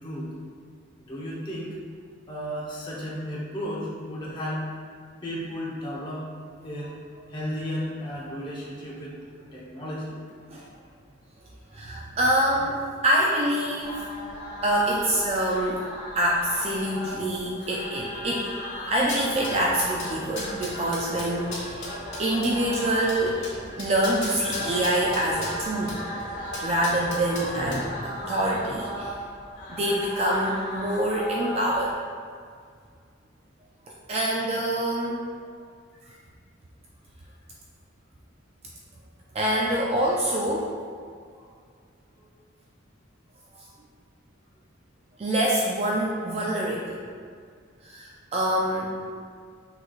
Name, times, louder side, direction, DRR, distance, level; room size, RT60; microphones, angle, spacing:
voice 1, 0.0-0.3 1.1-1.7 2.3-4.6 5.2-6.3 6.6-7.0 7.3-9.1 9.5-10.1, equal, 25° left, -6 dB, 0.9 m, -33 dB
voice 2, 11.7-14.1 14.6-15.9 16.1-26.0 26.6-29.2 29.7-31.9 33.9-35.2 39.3-40.7 43.5-43.7 45.2-47.0 47.8-49.0, right 1 dB, 30° right, -3 dB, 0.3 m, -26 dB
sound 1, 13.8-31.9, equal, 50° left, 1.5 m, -37 dB
sound 2, 19.0-27.9, left 2 dB, 75° left, 1.3 m, -39 dB
6.1 x 3.2 x 2.4 m, 2.1 s
head